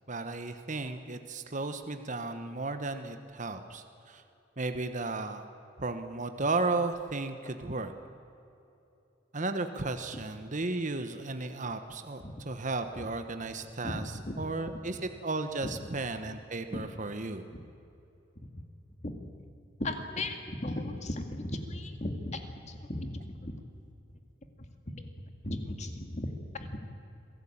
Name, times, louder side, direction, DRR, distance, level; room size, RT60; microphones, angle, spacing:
voice 1, 0.1-4.2 4.6-5.5 5.8-7.9 9.3-14.0 14.4-17.4, right 3 dB, 40° right, 8 dB, 1.2 m, -34 dB
voice 2, 13.8-14.4 15.6-15.8 16.7-16.8 17.5-17.6 19.0-19.1 19.8-22.4 22.7-23.5 24.9-25.1 25.4-26.8, left 1 dB, 40° left, 6 dB, 2.2 m, -36 dB
26.0 x 17.0 x 8.8 m, 2.8 s
head